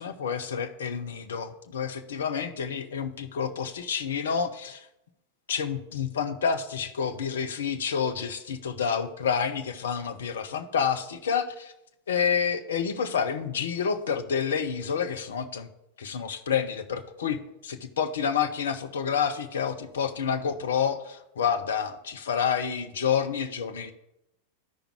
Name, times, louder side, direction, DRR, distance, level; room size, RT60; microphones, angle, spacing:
voice 1, 0.0-4.9 5.5-11.7 12.1-15.7 16.0-23.9, left 7 dB, 65° left, 8 dB, 0.7 m, -29 dB
13.0 x 5.0 x 3.1 m, 0.86 s
figure-of-eight pair, 90°, 0 cm